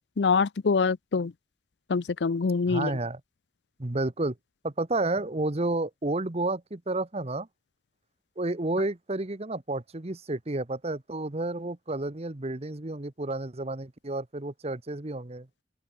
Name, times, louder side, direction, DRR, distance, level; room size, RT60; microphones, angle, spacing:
voice 1, 0.2-1.3 1.9-2.9, left 4 dB, 70° left, 0.5 m, -25 dB
voice 2, 2.7-3.2 3.8-4.4 4.6-7.5 8.4-15.5, right 2 dB, 35° right, 1.1 m, -31 dB
open air
head